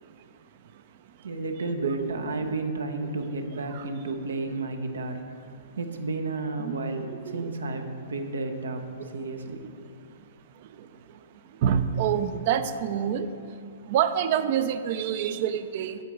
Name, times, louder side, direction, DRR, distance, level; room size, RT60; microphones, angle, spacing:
voice 1, 1.2-5.5 5.8-9.6, right 3 dB, 80° right, 6 dB, 0.7 m, -32 dB
voice 2, 1.8-2.1 2.4-2.5 3.7-3.9 6.6-6.8 7.1-7.5 11.6-13.3 13.9-16.0, right 9 dB, 50° right, 11 dB, 0.4 m, -27 dB
8.1 x 3.8 x 6.5 m, 2.3 s
hypercardioid pair, 125°, 0 cm